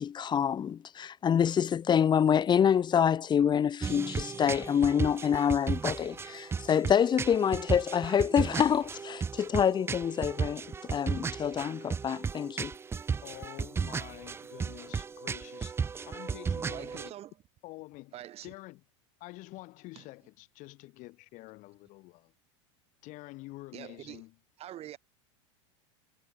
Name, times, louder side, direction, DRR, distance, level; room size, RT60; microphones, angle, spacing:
voice 1, 0.0-12.7, left 8 dB, 30° left, 1.4 m, -27 dB
sound 1, 3.8-17.1, right 5 dB, 15° right, 0.5 m, -35 dB
voice 2, 13.2-15.8 16.0-17.1 17.6-18.1 18.4-18.8 19.2-22.3 23.0-24.3, left 21 dB, 55° left, 4.8 m, -47 dB
voice 3, 16.7-17.4 18.1-18.5 20.0-20.1 23.7-24.2 24.6-25.0, right 12 dB, 40° right, 2.3 m, -45 dB
hypercardioid pair, 100°, 16 cm